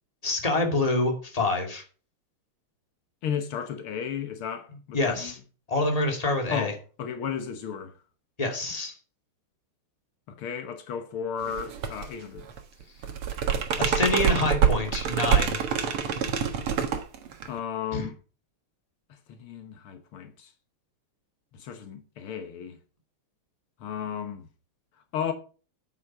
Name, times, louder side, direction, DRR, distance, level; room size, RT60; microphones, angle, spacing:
voice 1, 0.2-1.8 4.9-5.4 5.7-6.7 8.4-8.9 13.8-15.6 17.9-18.1, left 2 dB, 15° left, 2.5 m, -26 dB
voice 2, 3.2-5.3 6.5-7.9 10.3-12.5 17.5-18.2 19.1-20.5 21.5-22.8 23.8-24.5 25.1-25.3, left 8 dB, 80° left, 2.0 m, -34 dB
sound 1, 11.5-12.1 12.4-17.6, right 7 dB, 85° right, 2.3 m, -26 dB
8.5 x 7.6 x 6.2 m
omnidirectional pair, 2.4 m